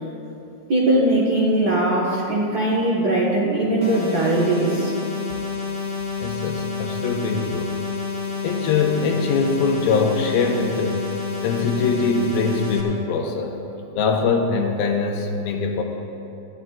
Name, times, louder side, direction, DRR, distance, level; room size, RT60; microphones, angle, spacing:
voice 1, 0.7-4.9, right 1 dB, 70° right, -6 dB, 0.9 m, -20 dB
sound 1, 3.8-12.8, left 5 dB, 35° left, 1.2 m, -29 dB
voice 2, 6.2-7.7 8.4-11.0 11.4-13.6 14.0-15.8, left 4 dB, 85° left, 1 dB, 2.8 m, -22 dB
20.0 x 14.5 x 2.4 m, 2.7 s
omnidirectional pair, 4.3 m